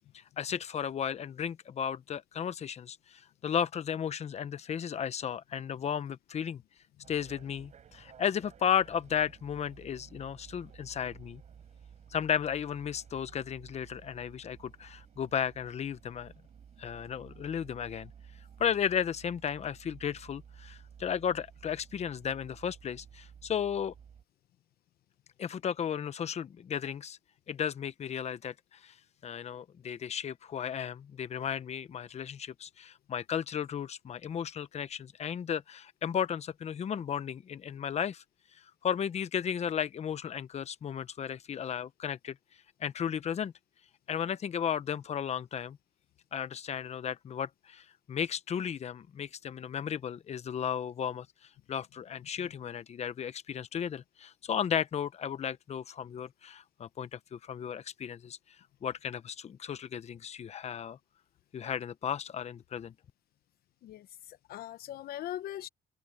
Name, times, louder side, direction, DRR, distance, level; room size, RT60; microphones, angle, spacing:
voice 1, 0.1-6.6 7.1-11.4 12.1-16.3 16.8-18.1 18.6-23.9 25.4-27.2 27.5-28.9 29.2-38.2 38.8-42.4 42.8-43.5 44.1-45.8 46.3-51.3 51.7-58.4 58.8-61.0 61.5-62.9, left 8 dB, 40° left, 1.0 m, -34 dB
sound 1, 7.0-24.2, right 8 dB, 45° right, 4.3 m, -54 dB
voice 2, 63.8-65.7, left 12 dB, 65° left, 0.8 m, -41 dB
open air
cardioid pair, 110°, 17 cm